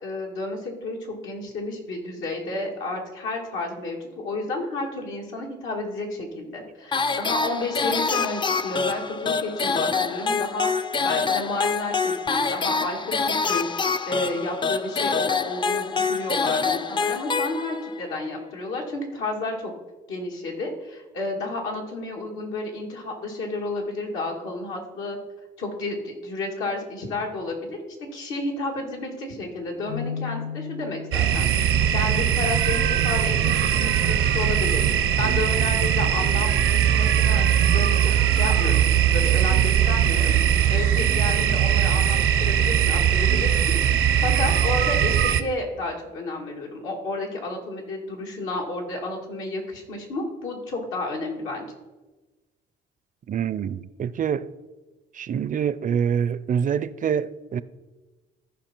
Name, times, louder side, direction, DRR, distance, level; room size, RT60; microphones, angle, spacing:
voice 1, 0.0-4.0 4.2-10.7 11.0-19.7 20.1-25.2 25.6-31.5 31.9-34.9 35.2-40.3 40.7-43.6 43.9-51.7, left 2 dB, 85° left, 2.3 m, -31 dB
sound 1, 6.9-18.0, left 4 dB, 25° left, 0.4 m, -26 dB
Keyboard (musical), 29.9-31.7, left 7 dB, 65° left, 2.6 m, -34 dB
sound 2, 31.1-45.4, right 9 dB, 85° right, 0.7 m, -20 dB
voice 2, 53.3-54.5 55.2-57.6, right 8 dB, 40° right, 0.4 m, -25 dB
14.0 x 5.1 x 4.4 m
cardioid pair, 90°, 20 cm